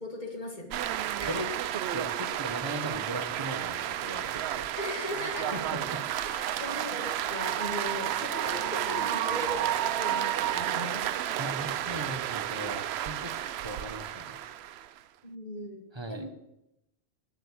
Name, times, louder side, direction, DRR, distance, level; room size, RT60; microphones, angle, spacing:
voice 1, 0.0-1.4 4.8-5.6 6.1-11.1 15.2-16.3, left 2 dB, 35° left, 2 dB, 2.0 m, -39 dB
sound 1, 0.7-15.0, right 11 dB, 65° right, 0.7 m, -31 dB
voice 2, 1.7-4.7 5.5-6.0 11.4-13.3 13.6-14.4 15.9-16.3, right 1 dB, 25° right, 6 dB, 1.1 m, -38 dB
9.1 x 7.6 x 8.4 m, 0.84 s
omnidirectional pair, 1.3 m